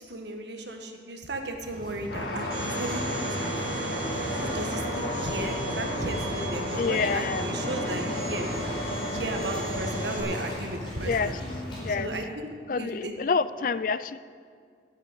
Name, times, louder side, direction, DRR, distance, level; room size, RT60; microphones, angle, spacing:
voice 1, 0.0-3.8 4.2-8.5 8.9-11.3 11.9-12.5 12.8-13.1, right 2 dB, 75° right, 4 dB, 1.6 m, -35 dB
Waves surf, 1.6-11.9, equal, 25° left, 4.8 m, -37 dB
sound 1, 2.1-10.5, left 1 dB, 80° left, 2.0 m, -33 dB
Domestic sounds home sounds, 2.5-10.2, right 3 dB, 50° right, 3.5 m, -38 dB
voice 2, 6.8-7.5 11.0-11.3 11.8-12.1 12.7-14.2, left 5 dB, 50° left, 15 dB, 0.4 m, -27 dB
11.5 x 9.2 x 9.2 m, 2.1 s
head